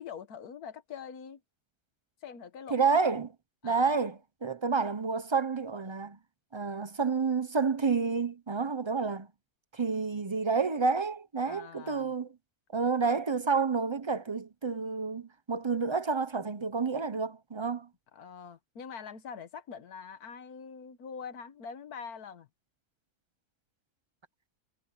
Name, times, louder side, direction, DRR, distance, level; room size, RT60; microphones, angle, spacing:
voice 1, 0.0-1.4 2.2-2.8 3.6-3.9 11.5-12.1 18.1-22.5, left 6 dB, 80° left, 1.8 m, -44 dB
voice 2, 2.7-3.3 3.6-6.2 6.5-9.3 9.7-12.3 12.7-17.9, right 5 dB, 25° right, 0.6 m, -29 dB
omnidirectional pair, 1.6 m